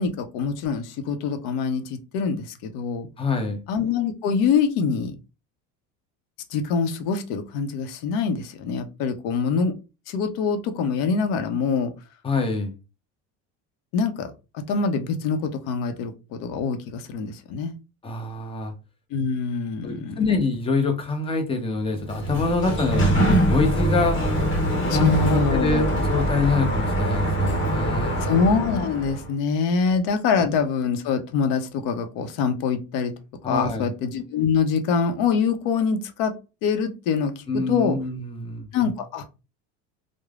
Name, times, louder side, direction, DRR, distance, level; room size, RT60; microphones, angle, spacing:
voice 1, 0.0-3.1 3.7-5.2 6.5-9.7 10.1-11.9 13.9-14.3 14.7-17.7 19.1-20.2 24.9-25.9 28.2-33.1 33.5-36.3 36.6-38.0 38.7-39.3, left 5 dB, 65° left, 8 dB, 0.6 m, -24 dB
voice 2, 3.2-3.6 12.2-12.7 18.0-18.7 19.8-24.2 24.9-28.3 33.4-33.9 37.5-38.7, left 3 dB, 15° left, 4 dB, 0.6 m, -25 dB
Sliding door, 21.9-29.3, right 1 dB, 35° left, 1.0 m, -23 dB
3.1 x 2.0 x 2.3 m, 0.29 s
supercardioid pair, 115°, 34 cm